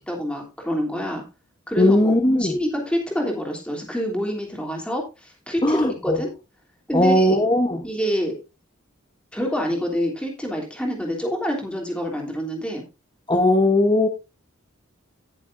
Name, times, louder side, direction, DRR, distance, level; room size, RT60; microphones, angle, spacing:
voice 1, 0.1-1.2 1.7-2.1 2.4-6.3 6.9-7.5 7.8-8.4 9.3-12.8, equal, 5° left, 0 dB, 3.1 m, -27 dB
voice 2, 1.8-2.6 5.6-6.2 6.9-7.9 13.3-14.1, left 1 dB, 20° left, 3 dB, 1.0 m, -18 dB
18.0 x 7.0 x 2.6 m, 0.27 s
head